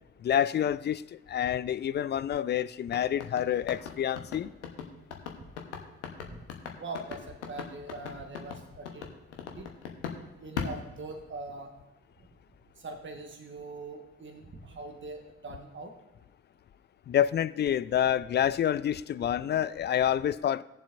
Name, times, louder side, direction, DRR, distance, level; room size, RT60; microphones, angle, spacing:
voice 1, 0.2-4.5 17.1-20.6, left 10 dB, 30° left, 0.4 m, -28 dB
sound 1, 2.9-10.2 10.6-11.6, left 7 dB, 80° left, 1.0 m, -38 dB
voice 2, 6.8-9.1 9.5-9.7 10.4-11.8 12.8-15.9, right 2 dB, 35° right, 1.3 m, -42 dB
19.0 x 7.2 x 2.5 m
figure-of-eight pair, 40°, 34 cm